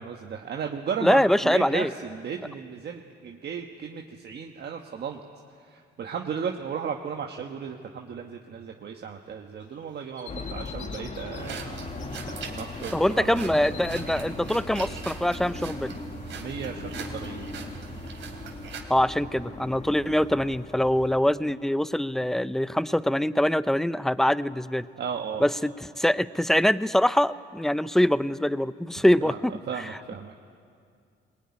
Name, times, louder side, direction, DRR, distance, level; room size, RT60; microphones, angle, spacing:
voice 1, 0.0-5.2 5.6-11.8 12.3-13.6 16.3-17.5 24.9-25.5 29.2-30.3, right 6 dB, 55° right, 2 dB, 1.4 m, -35 dB
voice 2, 1.0-1.9 12.9-16.0 18.9-24.9 25.4-29.5, left 1 dB, ahead, 15 dB, 0.6 m, -24 dB
sound 1, 9.6-11.6 11.9-12.5 12.8-15.8, left 7 dB, 65° left, 2.3 m, -47 dB
sound 2, 10.3-21.2, left 3 dB, 35° left, 1.9 m, -39 dB
sound 3, 11.3-18.8, right 6 dB, 75° right, 3.1 m, -41 dB
21.0 x 20.0 x 9.8 m, 2.3 s
cardioid pair, 90°, 20 cm